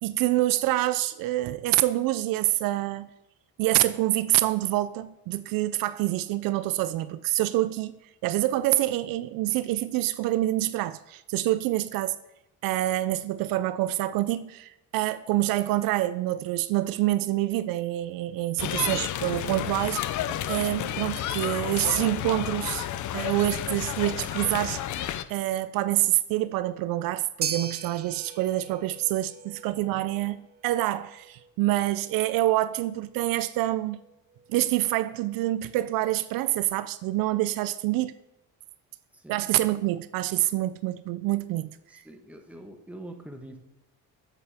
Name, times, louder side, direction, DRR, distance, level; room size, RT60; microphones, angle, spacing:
voice 1, 0.0-3.1 3.6-12.2 12.6-20.2 20.5-22.9 23.1-24.8 25.3-34.0 34.5-38.1 39.3-41.7, right 15 dB, 80° right, 0.5 m, -26 dB
sound 1, 18.6-25.2, left 11 dB, 60° left, 0.6 m, -31 dB
sound 2, 27.4-35.8, right 6 dB, 30° right, 0.6 m, -41 dB
voice 2, 39.1-39.7 41.9-43.6, right 1 dB, 5° right, 1.3 m, -44 dB
8.9 x 8.9 x 3.5 m
cardioid pair, 100°, 34 cm